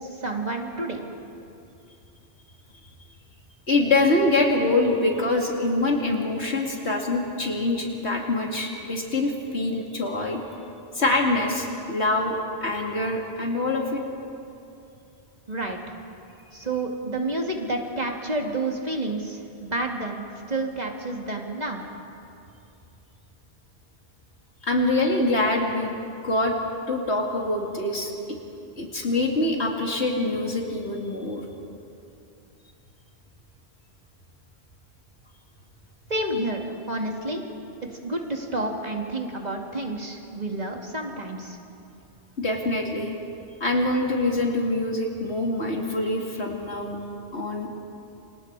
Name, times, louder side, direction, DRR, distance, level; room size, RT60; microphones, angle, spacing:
voice 1, 0.2-1.0 15.5-15.8 16.5-21.8 36.1-37.4 38.0-41.6, right 2 dB, 40° right, 1 dB, 2.4 m, -29 dB
voice 2, 3.7-10.4 10.9-12.4 12.6-14.0 24.6-25.9 26.2-26.5 26.9-28.4 28.8-31.4 42.4-43.1 43.6-47.0 47.3-47.7, left 2 dB, 85° left, 0 dB, 2.9 m, -24 dB
28.5 x 27.0 x 4.8 m, 2.7 s
omnidirectional pair, 1.1 m